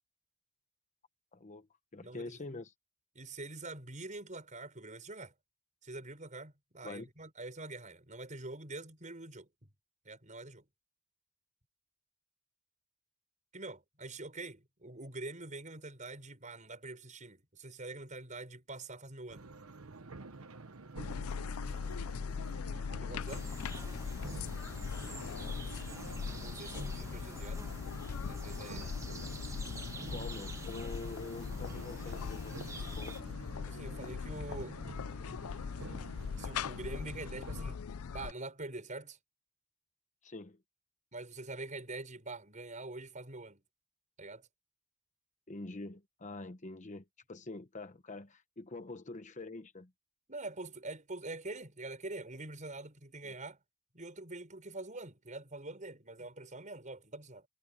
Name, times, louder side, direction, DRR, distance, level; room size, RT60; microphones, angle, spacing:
voice 1, 1.3-1.7 1.9-2.7 6.8-7.1 30.1-33.2 40.2-40.6 45.5-49.9 53.2-53.3, left 3 dB, 35° left, 1.0 m, -45 dB
voice 2, 2.0-2.6 3.1-5.3 5.8-9.5 10.0-10.6 13.5-19.5 23.0-23.5 26.4-27.6 28.3-28.9 33.7-34.8 35.1-35.3 36.4-37.8 38.1-39.2 41.1-43.6 44.2-44.5 50.3-53.6 53.9-57.5, right 2 dB, 35° right, 6.5 m, -45 dB
sound 1, 19.3-37.8, right 3 dB, 75° right, 1.2 m, -50 dB
sound 2, 21.0-38.3, left 6 dB, 80° left, 0.5 m, -40 dB
sound 3, 23.3-33.2, right 3 dB, 15° right, 1.4 m, -50 dB
head